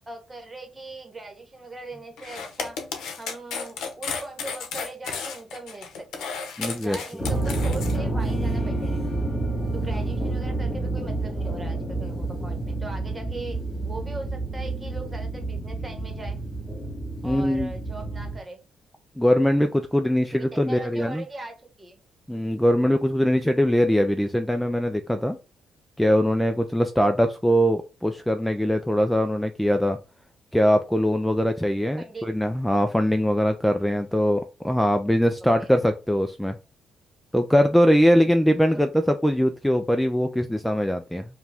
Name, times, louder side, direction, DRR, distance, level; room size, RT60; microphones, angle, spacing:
voice 1, 0.0-2.8 3.2-6.3 6.8-9.1 9.7-16.4 17.2-18.6 20.3-22.0 31.9-32.3 35.6-35.7 38.7-38.8, right 2 dB, 25° right, 4 dB, 1.1 m, -40 dB
sound 1, 2.2-7.9, left 5 dB, 80° left, 0.7 m, -33 dB
voice 2, 6.6-7.3 17.2-17.7 19.2-21.2 22.3-25.4 26.0-30.0 30.5-36.6 37.3-41.3, equal, 5° left, 7 dB, 0.3 m, -22 dB
sound 2, 7.2-18.4, right 2 dB, 40° left, 2.2 m, -29 dB
4.7 x 2.3 x 3.4 m, 0.32 s
cardioid pair, 90°, 0 cm